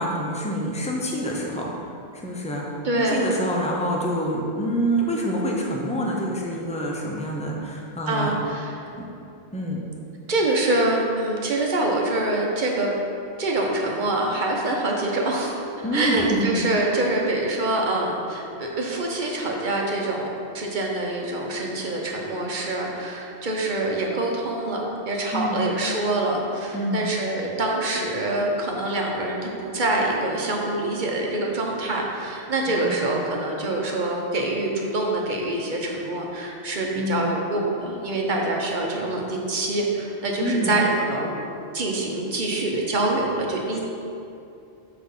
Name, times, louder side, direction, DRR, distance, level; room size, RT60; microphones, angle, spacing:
voice 1, 0.0-1.7 2.1-2.6 3.0-8.3 9.5-9.8 15.8-16.4 25.3-25.6 26.7-27.1 32.7-33.2 37.0-37.4 40.4-40.8 43.7-43.8, equal, 5° left, -2 dB, 0.7 m, -26 dB
voice 2, 2.8-3.2 8.1-8.8 10.3-12.9 13.4-41.3 41.7-43.8, right 2 dB, 50° right, -1 dB, 1.0 m, -25 dB
6.2 x 4.6 x 5.6 m, 2.7 s
omnidirectional pair, 1.1 m